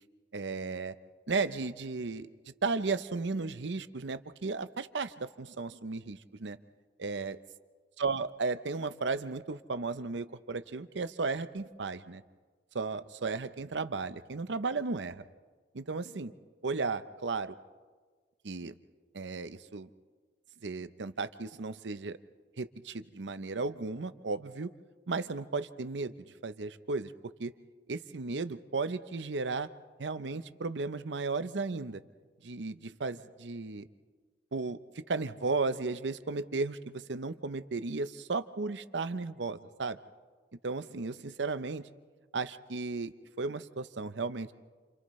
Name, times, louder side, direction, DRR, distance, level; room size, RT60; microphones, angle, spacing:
voice 1, 0.3-0.9 1.3-2.3 2.6-6.6 7.0-7.4 8.0-12.2 12.7-15.2 15.7-16.3 16.6-17.5 18.4-18.7 19.1-19.9 20.6-22.2 22.6-24.7 25.1-27.1 27.4-27.5 27.9-29.7 30.0-32.0 32.4-33.9 34.5-34.8 35.1-40.0 40.6-41.9 42.3-44.5, right 4 dB, 85° right, 12 dB, 0.7 m, -35 dB
29.0 x 27.5 x 3.2 m, 1.5 s
head